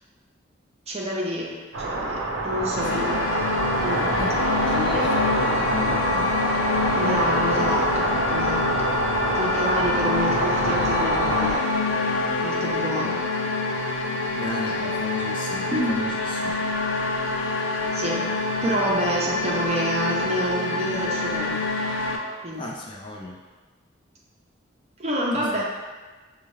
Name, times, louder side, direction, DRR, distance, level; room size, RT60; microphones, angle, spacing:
voice 1, 0.9-4.0 4.9-5.0 7.0-8.7 9.3-11.6 12.4-13.2 14.8-14.9 15.7-16.0 17.9-18.3 18.6-21.6 22.4-22.6 25.0-25.6, right 1 dB, 35° right, -3 dB, 0.7 m, -28 dB
sound 1, 1.7-11.5, right 2 dB, 75° right, 0.7 m, -26 dB
sound 2, 2.8-22.2, left 3 dB, 85° left, 0.6 m, -26 dB
voice 2, 2.9-3.4 4.2-6.4 14.4-16.6 22.6-23.4 25.3-25.4, left 1 dB, 25° left, -2 dB, 0.4 m, -35 dB
6.5 x 2.4 x 3.1 m, 1.3 s
head